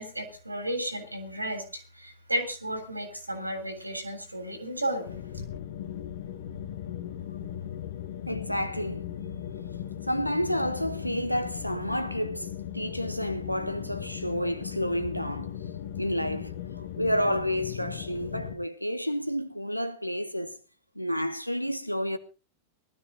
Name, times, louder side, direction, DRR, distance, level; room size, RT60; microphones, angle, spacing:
voice 1, 0.0-5.2, right 1 dB, 85° right, 3.5 m, -33 dB
sound 1, 5.1-18.5, left 10 dB, 60° left, 1.8 m, -38 dB
voice 2, 8.3-9.1 10.0-15.6 16.0-20.6 20.9-22.2, equal, 90° left, 1.3 m, -30 dB
19.0 x 12.5 x 3.9 m
figure-of-eight pair, 90°, 0 cm